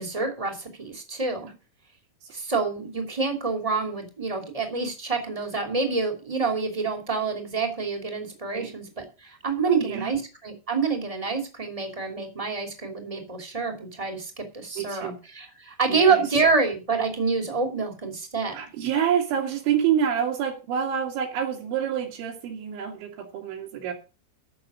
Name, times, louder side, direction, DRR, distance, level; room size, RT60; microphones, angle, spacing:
voice 1, 0.0-1.5 2.3-18.6, right 4 dB, 15° right, 4 dB, 1.4 m, -27 dB
voice 2, 9.7-10.1 14.8-15.2 15.9-16.2 18.5-23.9, right 8 dB, 75° right, -2 dB, 4.5 m, -27 dB
14.0 x 6.2 x 6.3 m, 0.32 s
omnidirectional pair, 5.4 m